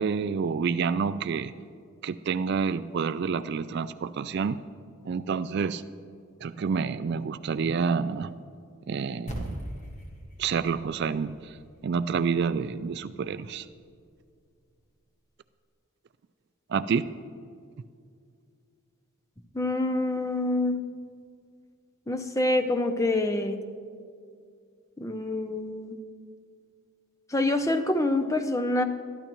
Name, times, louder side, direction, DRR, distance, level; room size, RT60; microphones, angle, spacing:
voice 1, 0.0-1.5 2.0-4.6 5.1-5.8 6.4-8.3 8.9-9.6 10.4-11.6 11.8-13.7 16.7-17.1, right 5 dB, 50° right, 13 dB, 0.3 m, -28 dB
sound 1, 9.3-13.8, right 1 dB, 30° left, 1.5 m, -41 dB
voice 2, 19.5-20.8 22.1-23.6 25.0-26.0 27.3-28.8, left 2 dB, 15° left, 7 dB, 0.6 m, -26 dB
21.0 x 13.0 x 3.0 m, 2.2 s
head